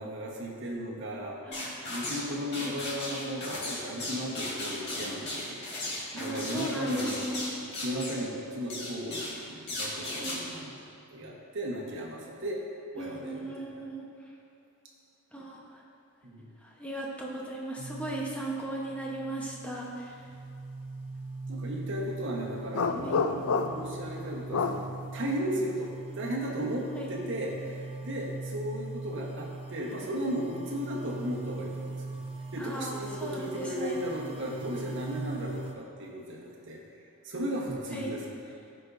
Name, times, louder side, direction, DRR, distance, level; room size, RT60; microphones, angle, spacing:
voice 1, 0.0-1.4 1.9-5.6 6.1-12.6 12.9-13.8 16.2-16.4 21.5-32.2 32.5-36.8 37.2-38.2, equal, 60° right, -2 dB, 1.2 m, -35 dB
voice 2, 1.4-1.9 2.6-2.8 6.2-7.5 10.2-10.4 13.0-14.1 15.3-15.8 16.6-20.3 23.0-23.2 26.9-27.1 32.6-34.0 37.9-38.2, right 1 dB, 5° left, -3 dB, 0.9 m, -37 dB
sound 1, 1.5-2.3 2.5-8.3 8.7-9.4 9.7-10.4, left 1 dB, 50° left, 2.0 m, -36 dB
sound 2, 17.8-35.7, right 3 dB, 25° right, 0.7 m, -41 dB
sound 3, 22.7-24.0 24.5-24.8, left 4 dB, 70° left, 0.4 m, -28 dB
14.0 x 5.2 x 2.6 m, 2.4 s
head